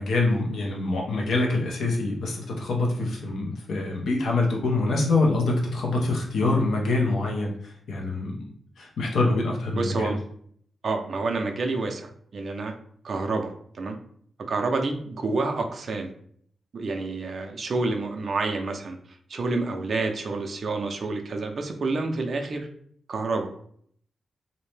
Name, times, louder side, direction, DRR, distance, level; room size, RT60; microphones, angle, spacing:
voice 1, 0.0-8.5 8.8-10.2, left 2 dB, 75° left, -1 dB, 0.6 m, -25 dB
voice 2, 9.7-10.2 10.8-12.7 13.0-14.0 14.5-16.1 16.7-19.0 19.3-22.7 23.1-23.5, right 3 dB, 45° right, 4 dB, 0.4 m, -28 dB
2.6 x 2.1 x 3.1 m, 0.62 s
wide cardioid pair, 155°, 0 cm